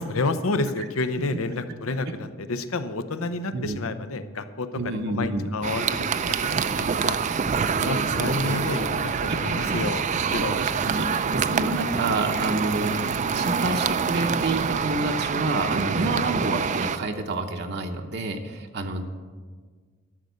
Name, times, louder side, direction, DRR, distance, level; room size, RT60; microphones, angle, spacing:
voice 1, 0.0-7.2 7.6-10.6 16.1-16.2, left 3 dB, 75° left, 11 dB, 0.8 m, -30 dB
voice 2, 4.8-5.5 7.8-8.6 9.0-9.8 10.3-19.0, right 2 dB, 50° right, 3 dB, 0.8 m, -29 dB
sound 1, 5.6-17.0, right 6 dB, 35° right, 0.4 m, -26 dB
12.0 x 6.4 x 8.1 m, 1.6 s
head